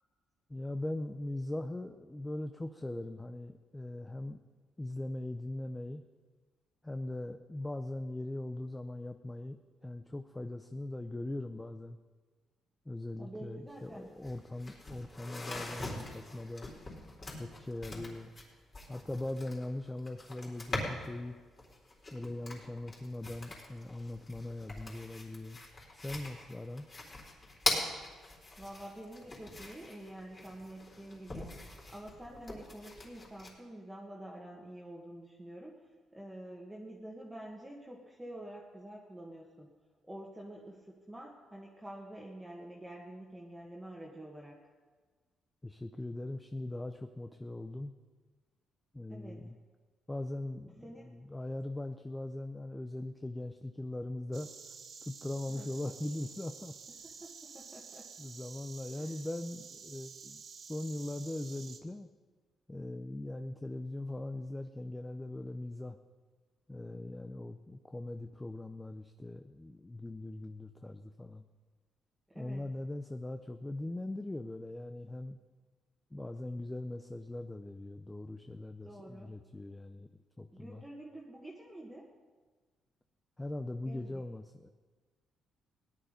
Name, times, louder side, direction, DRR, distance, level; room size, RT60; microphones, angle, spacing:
voice 1, 0.5-4.4 4.8-6.0 6.8-9.6 9.8-12.0 12.9-16.7 17.4-18.3 18.9-21.4 22.1-25.6 26.0-26.9 45.6-47.9 48.9-49.6 50.1-54.5 55.0-56.7 58.2-62.1 62.7-66.0 66.7-71.4 72.3-75.4 76.1-80.1 80.4-80.8 83.4-84.7, left 1 dB, 15° left, 7 dB, 0.7 m, -40 dB
voice 2, 13.2-14.1 28.6-31.5 31.9-39.7 40.0-44.6 49.1-49.4 50.8-51.2 55.5-55.7 57.0-58.1 59.0-59.1 72.3-72.7 78.8-79.4 80.0-80.1 80.5-82.1 83.8-84.2, right 1 dB, 10° right, -3 dB, 1.9 m, -48 dB
sound 1, 13.7-13.8 14.0-21.2 21.6-33.5, left 2 dB, 35° left, 4.2 m, -42 dB
Insect, 54.3-61.8, right 5 dB, 55° right, 1.4 m, -50 dB
17.5 x 10.5 x 5.3 m, 1.4 s
cardioid pair, 90°, 0 cm